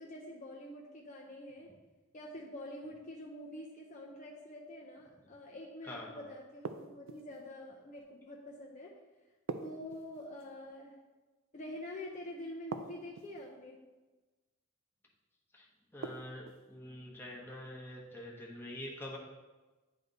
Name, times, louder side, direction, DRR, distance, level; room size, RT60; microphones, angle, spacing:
voice 1, 0.0-1.7 2.1-9.0 9.5-10.9 11.5-13.8, left 1 dB, 40° left, -2 dB, 0.6 m, -46 dB
voice 2, 5.8-6.3 15.5-15.7 15.9-19.2, left 1 dB, 10° left, -3 dB, 1.1 m, -45 dB
sound 1, 6.6-7.4 9.5-10.5 12.7-13.5 16.0-16.7, right 4 dB, 85° right, 0.5 m, -43 dB
9.9 x 3.4 x 3.9 m, 1.2 s
head